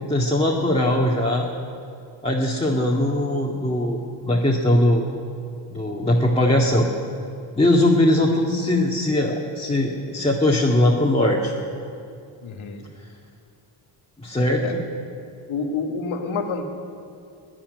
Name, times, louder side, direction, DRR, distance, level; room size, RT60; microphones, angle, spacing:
voice 1, 0.0-1.5 2.2-5.0 5.7-6.9 7.5-11.5 14.2-14.6, left 1 dB, 10° left, -4 dB, 2.0 m, -20 dB
voice 2, 12.4-12.8 14.6-14.7 15.5-16.7, left 4 dB, 75° left, 5 dB, 1.7 m, -28 dB
15.0 x 10.0 x 9.6 m, 2.4 s
cardioid pair, 55°, 48 cm